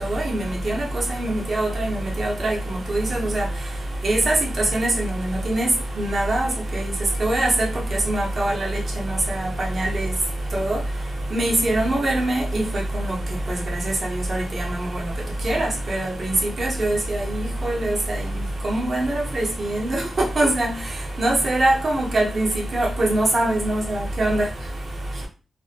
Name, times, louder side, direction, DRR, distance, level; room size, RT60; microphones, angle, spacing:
voice 1, 1.1-2.6 2.9-3.4 4.0-4.4 4.7-5.1 5.4-5.7 6.0-6.9 7.2-7.7 8.1-8.8 9.4-9.5 9.8-10.1 10.5-10.8 11.3-12.6 14.3-14.4 15.4-17.2 17.6-17.9 18.6-19.1 19.3-20.0 20.4-20.7 21.2-22.5 22.7-24.4, right 1 dB, 45° right, 0.8 m, -22 dB
2.5 x 2.1 x 2.4 m
wide cardioid pair, 105°, 0 cm